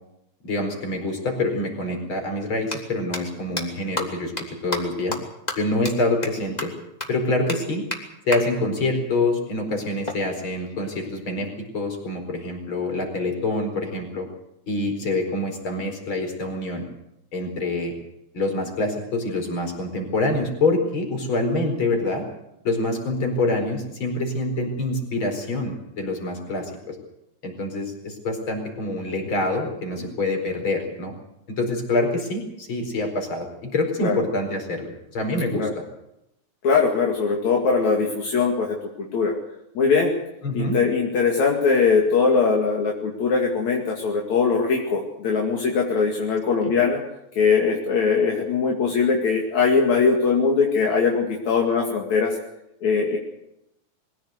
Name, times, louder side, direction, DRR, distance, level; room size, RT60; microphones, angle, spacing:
voice 1, 0.4-5.2 5.5-6.7 7.1-7.9 8.2-14.3 14.7-16.8 17.3-17.9 18.3-22.3 22.6-27.0 27.4-31.1 31.6-35.7 40.4-40.8 46.6-46.7, left 2 dB, 40° left, 4 dB, 5.1 m, -26 dB
sound 1, 2.6-2.8 3.1-3.2 3.6-3.7 4.0-4.1 4.4-4.5 4.7-4.8 5.1-5.2 5.5-5.6 5.8-5.9 6.2-6.3 6.6-6.7 7.0-7.1 7.5-7.6 7.9-8.0 8.3-8.4 10.0-11.1, left 1 dB, 15° left, 2.8 m, -30 dB
voice 2, 36.6-39.3 39.7-40.1 40.5-47.0 47.3-52.4 52.8-53.2, left 5 dB, 65° left, 0 dB, 3.5 m, -21 dB
23.0 x 16.0 x 7.9 m, 0.85 s
omnidirectional pair, 3.5 m